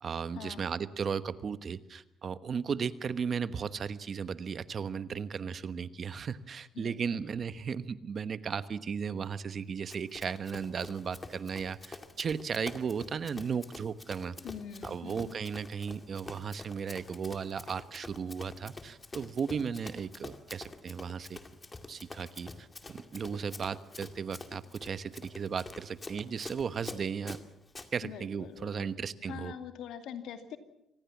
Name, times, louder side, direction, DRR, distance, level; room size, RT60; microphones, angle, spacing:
voice 1, 0.0-14.4 14.8-21.4 21.9-27.4 27.9-29.5, right 6 dB, 50° right, 14 dB, 1.1 m, -35 dB
voice 2, 6.7-7.2 14.4-15.3 28.0-28.9 29.2-30.6, left 8 dB, 80° left, 8 dB, 2.4 m, -44 dB
Run, 9.9-27.9, left 3 dB, 25° left, 2.3 m, -47 dB
25.5 x 19.0 x 7.3 m, 0.82 s
cardioid pair, 90°, 0 cm